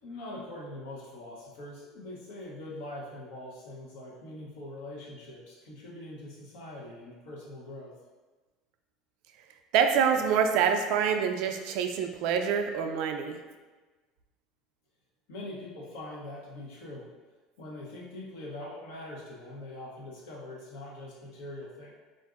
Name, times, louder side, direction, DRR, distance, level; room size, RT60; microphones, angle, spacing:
voice 1, 0.0-7.9 15.3-17.1 17.6-21.9, left 1 dB, 75° left, -3 dB, 0.9 m, -43 dB
voice 2, 9.7-13.4, right 7 dB, 70° right, 5 dB, 0.3 m, -26 dB
3.8 x 2.5 x 2.4 m, 1.3 s
supercardioid pair, 90°, 0 cm